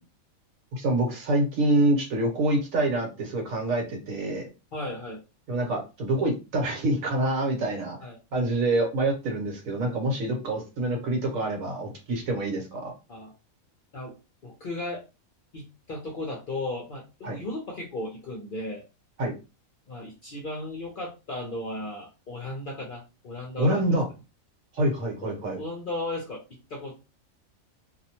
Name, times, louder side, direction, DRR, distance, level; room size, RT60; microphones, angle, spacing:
voice 1, 0.7-4.4 5.5-8.0 8.3-12.9 17.2-17.4 19.2-19.3 23.6-24.1 24.7-25.6, right 1 dB, 70° right, 2 dB, 1.3 m, -26 dB
voice 2, 4.7-5.2 8.0-8.2 10.1-10.4 13.1-13.3 13.9-14.2 14.4-15.0 15.5-18.8 19.9-23.7 25.2-26.9, left 2 dB, 55° left, -1 dB, 0.6 m, -35 dB
2.7 x 2.1 x 2.8 m, 0.28 s
omnidirectional pair, 1.5 m